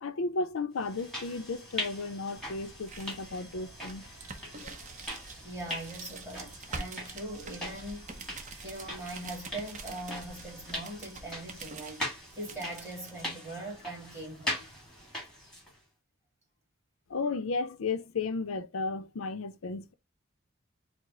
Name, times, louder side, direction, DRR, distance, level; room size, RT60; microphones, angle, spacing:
voice 1, 0.0-4.1 4.6-4.8 17.1-19.9, left 3 dB, 90° left, 0.5 m, -34 dB
sound 1, 0.8-15.8, left 1 dB, 5° left, 1.6 m, -41 dB
sound 2, 2.4-13.2, right 3 dB, 35° right, 0.7 m, -46 dB
voice 2, 5.4-8.2 8.6-14.7, right 1 dB, 15° right, 2.4 m, -41 dB
4.7 x 2.0 x 3.8 m
head